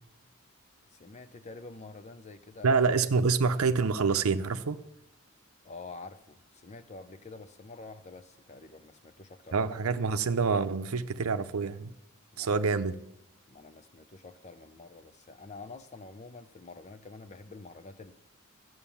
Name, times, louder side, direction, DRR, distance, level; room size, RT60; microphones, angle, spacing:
voice 1, 0.9-2.7 3.2-3.3 5.6-9.7 12.3-12.6 13.5-18.1, left 3 dB, 30° left, 0.6 m, -47 dB
voice 2, 2.6-4.8 9.5-11.9 12.4-13.0, right 4 dB, 90° right, 0.6 m, -27 dB
13.0 x 7.9 x 7.0 m
head